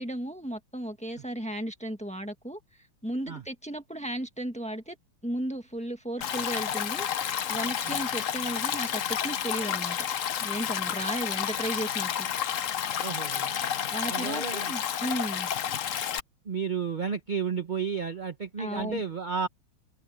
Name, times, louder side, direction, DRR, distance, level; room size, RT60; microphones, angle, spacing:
voice 1, 0.0-2.6 3.0-5.0 5.2-10.0 10.4-12.3 13.9-15.5 18.6-19.0, right 1 dB, 5° left, 1.4 m, -35 dB
Stream, 6.2-16.2, left 9 dB, 55° left, 0.9 m, -30 dB
voice 2, 13.0-13.6 14.1-14.7 16.4-19.5, right 6 dB, 40° right, 0.7 m, -32 dB
omnidirectional pair, 2.3 m